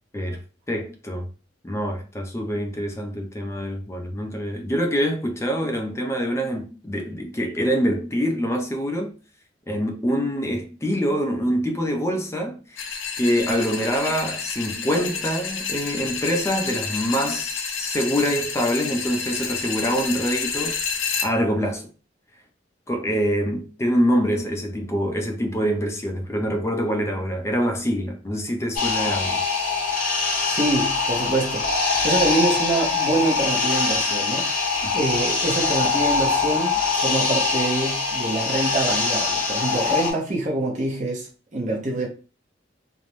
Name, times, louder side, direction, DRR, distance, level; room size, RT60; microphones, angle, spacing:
voice 1, 0.7-1.3 1.6-9.1 9.7-12.8 13.2-21.9 22.9-29.4, equal, 15° left, 0.4 m, -25 dB
sound 1, 12.8-21.3, left 6 dB, 90° left, 0.5 m, -29 dB
sound 2, 28.8-40.1, left 4 dB, 45° left, 0.7 m, -23 dB
voice 2, 30.5-34.6 34.9-42.1, right 2 dB, 40° right, 0.7 m, -25 dB
2.5 x 2.1 x 2.9 m
head